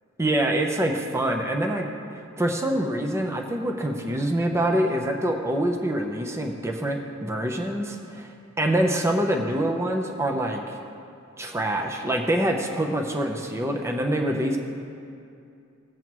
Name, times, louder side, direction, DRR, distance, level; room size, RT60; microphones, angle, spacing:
voice 1, 0.2-1.9 2.4-8.3 8.6-10.8 11.4-14.6, right 1 dB, 15° right, 2 dB, 0.7 m, -25 dB
18.0 x 7.7 x 3.1 m, 2.6 s
head